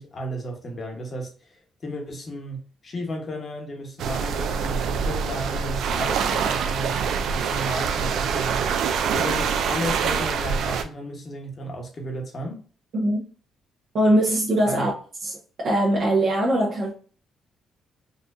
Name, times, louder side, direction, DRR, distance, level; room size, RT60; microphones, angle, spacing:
voice 1, 0.0-1.6 1.8-8.6 9.1-12.6 14.6-14.9, equal, 40° left, 1.1 m, -33 dB
sound 1, 4.0-10.8, right 6 dB, 75° right, 0.4 m, -25 dB
voice 2, 13.9-14.9 15.2-16.9, right 1 dB, 60° right, 0.9 m, -21 dB
4.2 x 2.4 x 2.5 m
cardioid pair, 90°, 0 cm